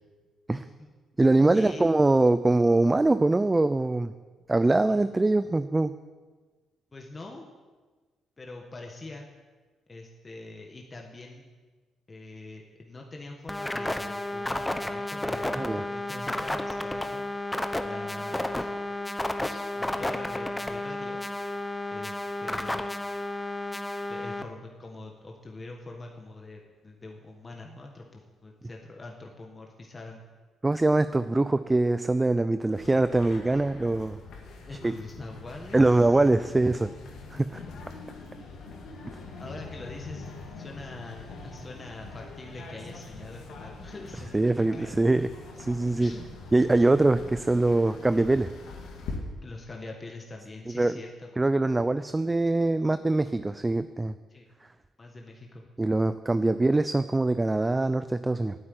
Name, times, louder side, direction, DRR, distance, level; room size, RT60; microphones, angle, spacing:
voice 1, 0.5-0.9 1.5-1.9 4.9-5.0 6.9-7.5 8.4-9.3 9.9-11.5 12.1-17.3 17.8-18.9 19.4-21.2 21.9-22.9 24.1-30.2 34.7-36.2 39.4-45.3 46.0-46.3 46.8-47.1 49.4-51.3 54.3-54.4 55.0-55.6, left 2 dB, 30° left, 1 dB, 1.5 m, -44 dB
voice 2, 1.2-4.1 4.5-5.9 15.6-15.8 30.6-34.2 34.8-34.9 35.7-36.9 37.3-37.6 44.3-45.3 45.7-46.1 46.5-48.5 50.7-50.9 51.4-54.1 55.8-58.6, right 2 dB, 15° right, 12 dB, 0.4 m, -23 dB
sound 1, 13.5-24.4, left 1 dB, 10° left, 0.8 m, -32 dB
sound 2, 32.7-49.2, left 3 dB, 80° left, 2.4 m, -43 dB
8.8 x 8.6 x 9.5 m, 1.4 s
cardioid pair, 90°, 0 cm